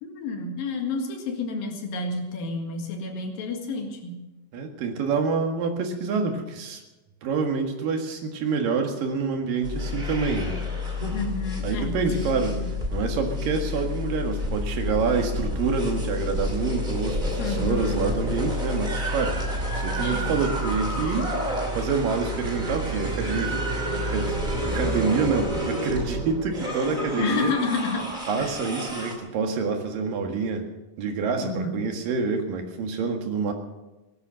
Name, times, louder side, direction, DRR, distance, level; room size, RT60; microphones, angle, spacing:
voice 1, 0.0-4.2 11.1-12.7 17.4-18.0 20.0-20.4 26.9-28.1 28.4-28.6 31.2-31.9, left 3 dB, 85° left, 3 dB, 3.7 m, -30 dB
voice 2, 4.5-6.8 7.2-10.6 11.6-12.6 12.9-19.4 19.8-21.3 21.8-23.6 23.9-24.4 24.6-27.5 28.3-30.7 31.0-33.5, right 5 dB, 75° right, 4 dB, 3.5 m, -27 dB
sound 1, 9.6-29.1, left 1 dB, 15° right, 2.2 m, -29 dB
18.0 x 11.5 x 6.4 m, 1.1 s
omnidirectional pair, 4.0 m